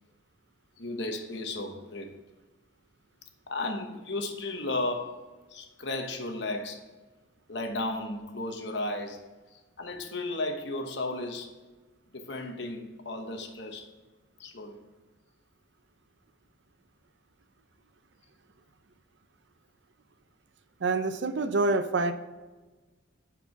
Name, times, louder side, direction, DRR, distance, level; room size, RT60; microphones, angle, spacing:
voice 1, 0.8-2.1 3.5-5.2 5.5-6.8 7.5-9.2 9.8-11.5 12.1-13.9 14.4-14.8, left 2 dB, 65° left, 5 dB, 1.1 m, -34 dB
voice 2, 20.8-22.1, right 3 dB, 65° right, 10 dB, 0.6 m, -26 dB
9.5 x 4.8 x 4.6 m, 1.3 s
head